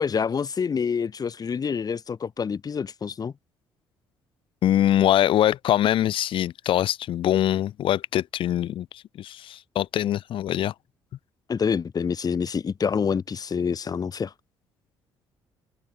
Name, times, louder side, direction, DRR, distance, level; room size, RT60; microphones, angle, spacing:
voice 1, 0.0-3.3 11.5-14.3, left 6 dB, 45° left, 3.2 m, -27 dB
voice 2, 4.6-10.7, left 12 dB, 65° left, 2.8 m, -23 dB
open air
supercardioid pair, 60°, 9 cm